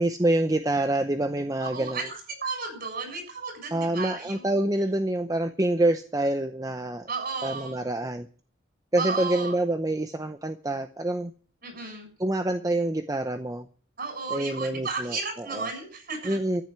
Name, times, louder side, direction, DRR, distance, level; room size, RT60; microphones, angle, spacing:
voice 1, 0.0-2.0 3.7-7.1 7.4-8.3 8.9-11.3 12.2-13.7 14.3-15.2 15.5-15.7 16.2-16.6, right 1 dB, 15° right, 8 dB, 0.7 m, -26 dB
voice 2, 1.6-4.6 7.1-7.9 9.0-9.6 11.6-12.1 14.0-16.4, right 4 dB, 50° right, 4 dB, 7.0 m, -34 dB
14.0 x 7.7 x 9.5 m, 0.43 s
head